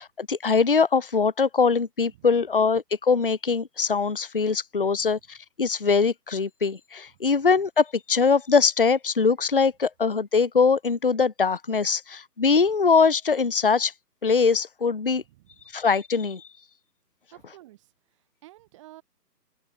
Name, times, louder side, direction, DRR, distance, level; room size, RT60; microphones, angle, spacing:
voice 1, 0.0-13.9 14.2-15.2 15.7-16.4, left 5 dB, 35° left, 0.7 m, -22 dB
voice 2, 12.4-12.7 15.2-15.7 17.3-19.0, right 16 dB, 20° right, 3.8 m, -53 dB
open air
figure-of-eight pair, 160°, 49 cm